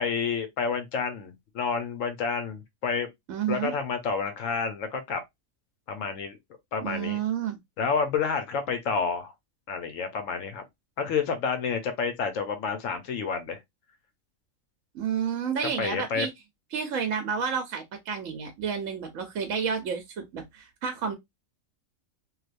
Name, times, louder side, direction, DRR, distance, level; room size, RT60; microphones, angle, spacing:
voice 1, 0.0-3.1 3.5-5.2 5.9-6.4 6.7-7.2 7.8-9.3 9.7-10.6 11.0-13.6 15.8-16.3, left 5 dB, 70° left, 1.1 m, -29 dB
voice 2, 3.3-3.7 6.8-7.6 14.9-16.3 16.7-21.1, right 7 dB, 75° right, 1.0 m, -30 dB
3.2 x 2.7 x 2.4 m
omnidirectional pair, 1.4 m